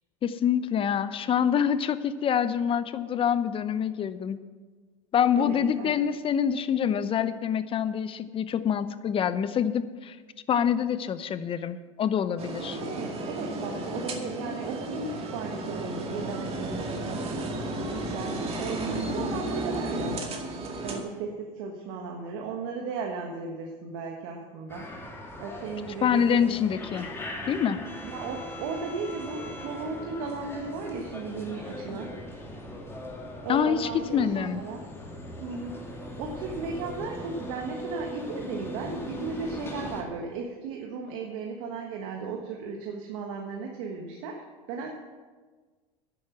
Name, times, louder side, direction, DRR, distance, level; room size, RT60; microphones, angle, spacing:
voice 1, 0.2-4.4 5.1-10.2 10.5-12.8 26.0-27.1 27.5-27.8 33.5-34.6, left 8 dB, 30° left, 14 dB, 0.7 m, -26 dB
voice 2, 5.3-6.0 12.7-17.2 17.6-20.2 20.8-24.9 25.4-26.8 28.0-32.1 33.4-34.9 35.4-44.4 44.7-45.0, right 4 dB, 65° right, 1 dB, 1.5 m, -36 dB
sound 1, 12.4-21.0, right 2 dB, 35° right, 2.1 m, -33 dB
sound 2, 24.7-40.0, left 1 dB, 15° left, 2.6 m, -39 dB
10.5 x 7.9 x 7.3 m, 1.4 s
hypercardioid pair, 100°, 18 cm